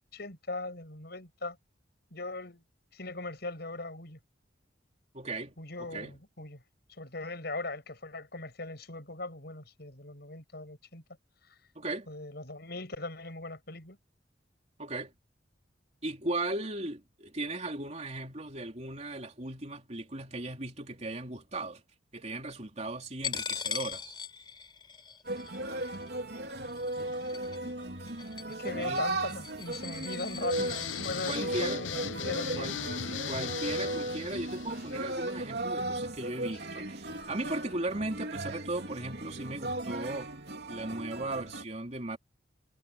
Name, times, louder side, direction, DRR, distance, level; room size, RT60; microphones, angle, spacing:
voice 1, 0.1-1.6 2.1-2.6 2.9-4.2 5.6-6.6 6.9-11.0 11.5-11.6 12.1-14.0 28.6-30.8 31.0-32.7, left 2 dB, 60° left, 7.6 m, -39 dB
voice 2, 5.1-5.5 5.8-6.1 11.7-12.1 14.8-15.1 16.0-21.8 22.1-24.1 28.7-29.0 31.2-31.8 32.6-32.8 33.3-40.3 40.7-42.2, right 2 dB, 35° right, 3.4 m, -37 dB
Coin (dropping), 23.2-31.4, left 6 dB, 25° left, 4.0 m, -41 dB
sound 1, 25.3-41.6, right 1 dB, 60° right, 3.2 m, -36 dB
sound 2, 30.5-35.5, left 7 dB, 85° left, 0.8 m, -38 dB
head